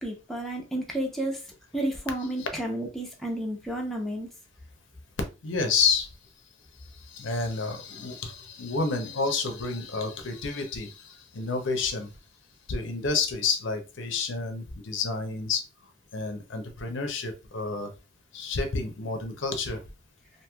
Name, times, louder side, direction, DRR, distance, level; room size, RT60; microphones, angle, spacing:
voice 1, 0.0-1.4 1.7-4.3, right 1 dB, ahead, -1 dB, 0.6 m, -31 dB
voice 2, 5.4-6.1 7.0-12.1 12.7-15.6 16.1-17.9 18.3-19.8, left 4 dB, 70° left, 6 dB, 0.6 m, -29 dB
3.0 x 2.7 x 2.2 m, 0.29 s
head